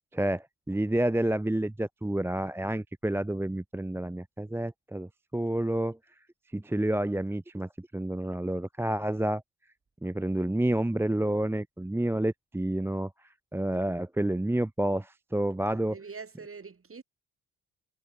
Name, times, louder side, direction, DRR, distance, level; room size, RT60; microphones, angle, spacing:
voice 1, 0.1-6.0 6.5-9.4 10.0-13.1 13.5-15.9, right 1 dB, 5° right, 0.8 m, -29 dB
voice 2, 15.7-17.0, right 5 dB, 35° right, 3.3 m, -44 dB
hypercardioid pair, 45°, 40 cm